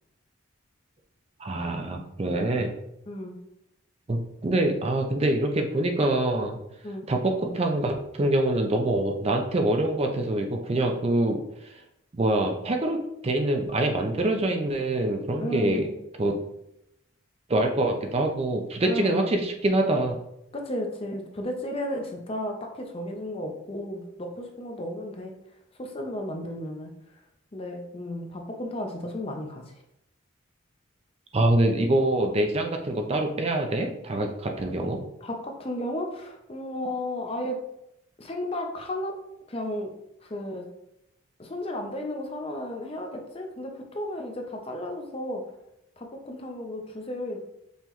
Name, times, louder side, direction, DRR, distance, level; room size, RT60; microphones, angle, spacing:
voice 1, 1.4-2.7 4.1-6.6 7.1-11.8 12.1-15.9 16.2-16.4 17.5-20.2 31.3-35.0, right 1 dB, 30° right, 3 dB, 0.4 m, -25 dB
voice 2, 15.4-15.9 18.8-19.3 20.5-25.3 25.8-26.9 27.5-29.7 35.2-37.6 38.2-39.1 39.5-39.9 40.2-40.6 41.4-45.4 46.0-47.4, left 1 dB, 25° left, 3 dB, 0.5 m, -33 dB
5.5 x 3.0 x 3.0 m, 0.82 s
head